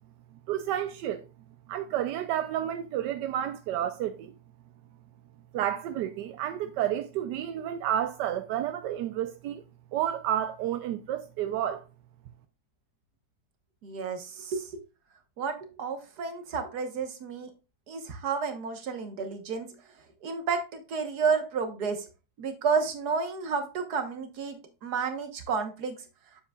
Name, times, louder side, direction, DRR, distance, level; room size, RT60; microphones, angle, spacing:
voice 1, 0.5-1.3 1.7-4.3 5.5-9.6 9.9-11.8, right 11 dB, 85° right, 1.2 m, -30 dB
voice 2, 13.8-14.8 15.4-17.5 17.9-19.7 20.2-22.1 22.4-26.0, right 5 dB, 70° right, 1.7 m, -31 dB
8.9 x 7.3 x 2.3 m
omnidirectional pair, 1.8 m